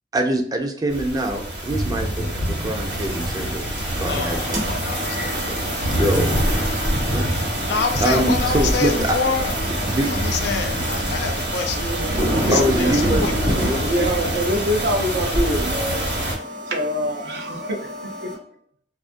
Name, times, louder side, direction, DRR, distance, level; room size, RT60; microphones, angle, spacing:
voice 1, 0.1-4.7 5.3-5.6 5.8-6.3 7.1-7.3 7.8-9.2 9.6-10.1 10.7-11.2 12.5-14.1, right 1 dB, 20° right, 3 dB, 0.4 m, -25 dB
sound 1, 0.9-16.3, right 1 dB, 85° right, 1.2 m, -24 dB
voice 2, 4.0-4.4 4.7-5.4 5.9-6.0 7.7-8.9 9.1-9.4 10.4-11.8 13.2-13.3, left 5 dB, 70° left, 6 dB, 0.4 m, -25 dB
sound 2, 4.5-18.4, left 1 dB, 50° right, 1.1 m, -35 dB
voice 3, 11.7-13.2 13.6-16.0 16.7-18.0 18.2-18.3, equal, 70° right, 3 dB, 0.6 m, -25 dB
2.4 x 2.4 x 2.5 m, 0.65 s
head